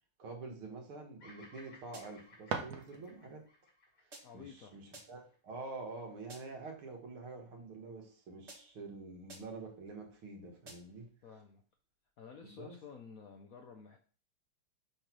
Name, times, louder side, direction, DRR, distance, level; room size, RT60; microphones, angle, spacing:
voice 1, 0.2-3.4 4.0-11.1 12.4-12.8, right 3 dB, 75° right, 2 dB, 2.4 m, -47 dB
Bird vocalization bird call bird song, 1.2-5.5, left 3 dB, 50° left, 2.4 m, -60 dB
sound 1, 1.9-2.4 4.1-4.5 4.9-5.4 6.3-6.7 8.5-8.9 9.3-9.7 10.7-11.1, right 2 dB, 35° right, 1.6 m, -55 dB
sound 2, 2.1-3.5, right 5 dB, 60° right, 1.1 m, -42 dB
voice 2, 4.2-4.8 11.2-11.6 12.2-14.0, left 6 dB, 80° left, 3 dB, 0.8 m, -52 dB
6.3 x 3.2 x 6.0 m, 0.39 s
omnidirectional pair, 2.4 m